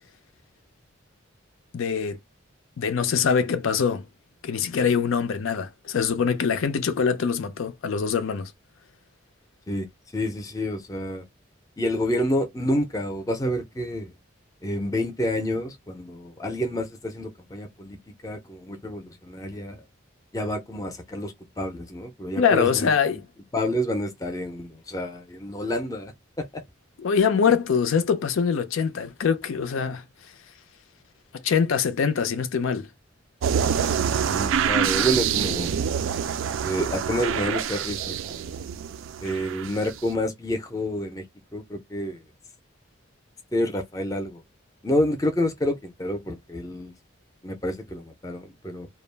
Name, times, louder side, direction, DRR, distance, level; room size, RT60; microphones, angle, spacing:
voice 1, 1.7-2.2 2.8-4.0 4.4-8.5 22.4-23.2 27.0-30.0 31.3-32.9, left 6 dB, 85° left, 0.4 m, -23 dB
voice 2, 9.7-11.2 11.8-14.1 14.6-18.0 18.2-19.8 20.3-23.2 23.5-26.6 34.3-35.9 36.6-38.5 39.2-41.2 41.5-42.2 43.5-44.4 44.8-46.9 47.4-48.9, equal, 15° left, 0.4 m, -29 dB
sound 1, 33.4-40.0, right 8 dB, 80° right, 0.3 m, -26 dB
2.3 x 2.1 x 3.2 m
head